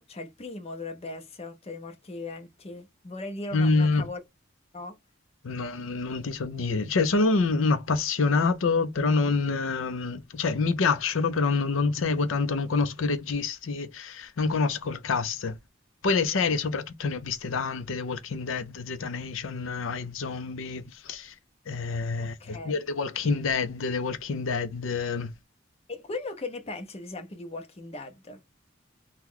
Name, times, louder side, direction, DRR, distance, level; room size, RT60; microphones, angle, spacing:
voice 1, 0.0-4.2 4.7-4.9 22.2-22.8 25.9-28.4, left 2 dB, 30° left, 0.6 m, -38 dB
voice 2, 3.5-4.0 5.4-15.5 16.0-21.3 21.7-25.3, left 4 dB, 75° left, 0.5 m, -27 dB
2.9 x 2.2 x 3.7 m
head